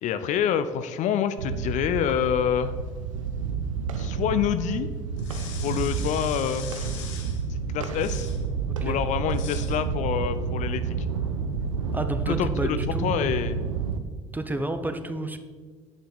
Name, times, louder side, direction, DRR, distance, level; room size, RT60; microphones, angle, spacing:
voice 1, 0.0-2.7 4.0-4.9 5.6-6.7 7.5-8.3 8.8-11.0 12.2-13.6, left 9 dB, 50° left, 12 dB, 0.5 m, -27 dB
sound 1, 1.4-14.0, right 5 dB, 80° right, 0.6 m, -30 dB
sound 2, 5.2-7.4 7.9-8.4 9.3-9.8, left 7 dB, 70° left, 1.0 m, -42 dB
voice 2, 8.7-9.0 11.9-13.3 14.3-15.4, right 1 dB, 10° right, 8 dB, 0.8 m, -31 dB
10.0 x 5.2 x 4.0 m, 1.5 s
figure-of-eight pair, 55°, 16 cm